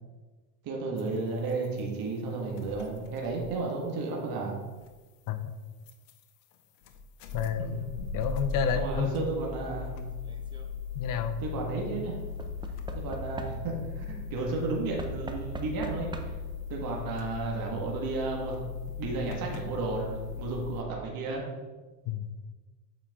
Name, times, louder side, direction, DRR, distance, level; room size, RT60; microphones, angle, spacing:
voice 1, 0.6-4.5 7.6-7.8 8.7-10.0 11.4-12.2 12.9-16.1 16.7-18.7 19.0-21.4, right 3 dB, 45° right, -1 dB, 1.6 m, -33 dB
sound 1, 1.0-1.1 1.5-1.8 2.4-3.7 4.8-5.0 5.9-6.2 6.5-6.6 6.8-20.8, left 5 dB, 85° left, 0.8 m, -38 dB
voice 2, 7.3-7.9 8.1-9.1 10.9-11.4 22.1-22.3, left 8 dB, 45° left, 10 dB, 0.7 m, -30 dB
Knock / Wood, 10.2-10.7 12.4-13.9 15.0-16.6 17.6-17.7 17.9-18.0, right 5 dB, 10° right, 0.5 m, -41 dB
7.6 x 5.0 x 3.6 m, 1.3 s
supercardioid pair, 95°, 47 cm